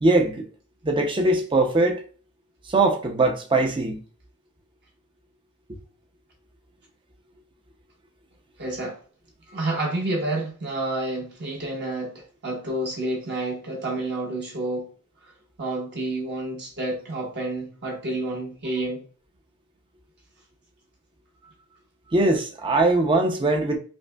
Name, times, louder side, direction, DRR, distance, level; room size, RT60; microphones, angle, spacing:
voice 1, 0.0-0.3 0.8-2.0 2.7-4.0 22.1-23.8, right 2 dB, 20° right, 0.5 m, -21 dB
voice 2, 8.6-9.0 9.5-14.9 15.6-19.0, right 2 dB, 50° right, 1.1 m, -29 dB
5.1 x 2.1 x 2.3 m
head